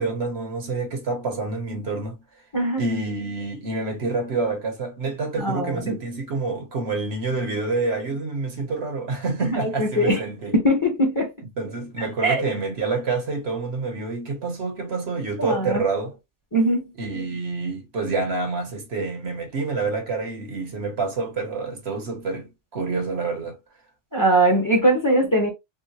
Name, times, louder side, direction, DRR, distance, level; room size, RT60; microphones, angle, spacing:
voice 1, 0.0-2.2 2.8-10.5 11.5-16.2 17.0-23.6, right 3 dB, 60° right, 1.2 m, -27 dB
voice 2, 5.4-6.0 9.4-10.2 10.6-11.3 12.2-12.4 15.4-15.8 16.5-16.8 24.1-25.5, right 1 dB, 15° left, 1.1 m, -21 dB
3.7 x 2.1 x 2.9 m
omnidirectional pair, 1.2 m